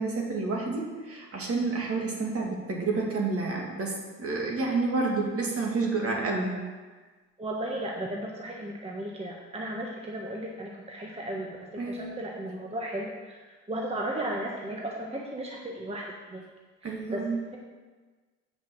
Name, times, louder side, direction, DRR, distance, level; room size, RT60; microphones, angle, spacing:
voice 1, 0.0-6.6 11.8-12.0 16.8-17.4, right 3 dB, 50° right, -1 dB, 2.4 m, -29 dB
voice 2, 7.4-13.4 13.7-16.5 16.8-17.6, right 1 dB, 20° right, -1 dB, 1.3 m, -35 dB
7.9 x 5.6 x 7.4 m, 1.4 s
cardioid pair, 90°, 30 cm